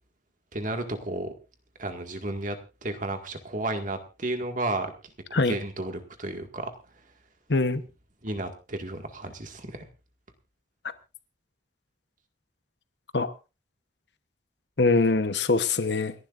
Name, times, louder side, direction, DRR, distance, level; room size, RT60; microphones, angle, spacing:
voice 1, 0.5-1.3 1.8-2.6 2.8-4.9 5.3-6.7 8.2-9.8, right 2 dB, 45° right, 6 dB, 1.9 m, -32 dB
voice 2, 7.5-7.8 13.1-13.3 14.8-16.1, left 3 dB, 70° left, 12 dB, 1.0 m, -23 dB
29.0 x 11.5 x 2.6 m, 0.30 s
head